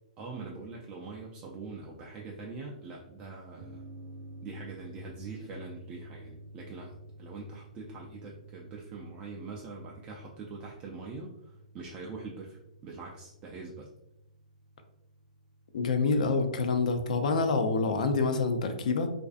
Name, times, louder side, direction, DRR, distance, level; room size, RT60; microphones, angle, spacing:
voice 1, 0.2-3.8 4.4-13.9, right 4 dB, 25° right, -2 dB, 0.3 m, -43 dB
sound 1, 3.6-16.5, right 1 dB, 55° right, 0.7 m, -51 dB
voice 2, 15.7-19.1, left 4 dB, 65° left, 7 dB, 0.4 m, -27 dB
2.5 x 2.3 x 2.3 m, 0.83 s
hypercardioid pair, 145°, 4 cm